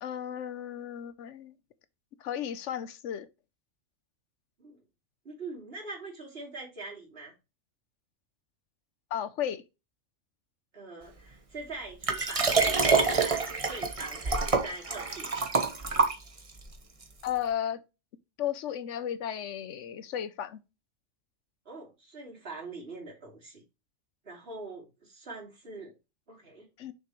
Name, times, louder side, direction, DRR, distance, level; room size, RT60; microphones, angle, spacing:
voice 1, 0.0-1.5 2.2-3.3 9.1-9.6 17.2-17.8 18.4-20.6 26.8-26.9, left 10 dB, 75° left, 1.1 m, -34 dB
voice 2, 5.2-7.3 10.7-15.4 21.6-23.6 24.2-25.9 26.3-26.7, right 3 dB, 50° right, 3.2 m, -43 dB
Liquid, 12.0-16.6 17.3-17.4, right 4 dB, 30° right, 1.0 m, -26 dB
6.6 x 5.8 x 3.1 m
omnidirectional pair, 1.3 m